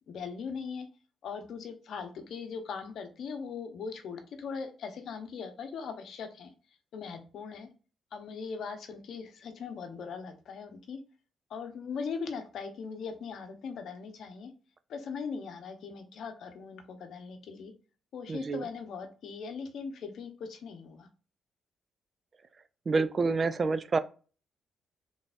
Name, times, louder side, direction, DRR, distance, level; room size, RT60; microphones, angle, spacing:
voice 1, 0.1-0.9 1.2-6.5 6.9-7.7 8.1-11.0 11.5-14.5 14.9-17.7 18.1-21.1, left 5 dB, 70° left, 0.8 m, -40 dB
voice 2, 18.3-18.6 22.9-24.0, right 4 dB, 40° right, 0.4 m, -27 dB
3.9 x 3.5 x 2.4 m
cardioid pair, 80°, 0 cm